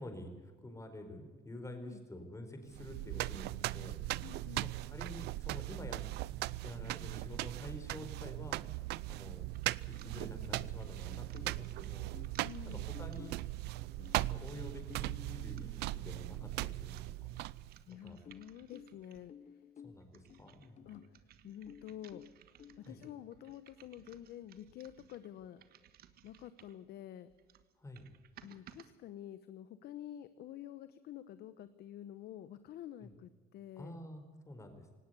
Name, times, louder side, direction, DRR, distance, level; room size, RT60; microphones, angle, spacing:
voice 1, 0.0-4.0 4.6-6.0 6.6-8.6 9.1-9.4 9.9-13.4 14.1-17.3 17.9-18.2 19.8-20.9 22.9-23.0 27.8-28.0 33.0-33.1 33.8-34.9, left 1 dB, 20° left, 6 dB, 4.6 m, -49 dB
sound 1, 2.7-17.8, right 18 dB, 85° right, 0.5 m, -39 dB
voice 2, 4.2-4.7 12.4-12.9 17.9-19.6 20.8-22.2 22.8-25.6 26.2-27.3 28.4-34.0, left 11 dB, 70° left, 13 dB, 1.0 m, -49 dB
sound 2, 9.5-19.4 19.9-26.9 27.3-28.9, right 10 dB, 65° right, 1.5 m, -62 dB
sound 3, 11.1-12.5 12.9-16.8 18.3-21.2 21.7-23.2, left 8 dB, 45° left, 0.8 m, -57 dB
18.5 x 18.0 x 8.2 m, 1.4 s
cardioid pair, 110°, 17 cm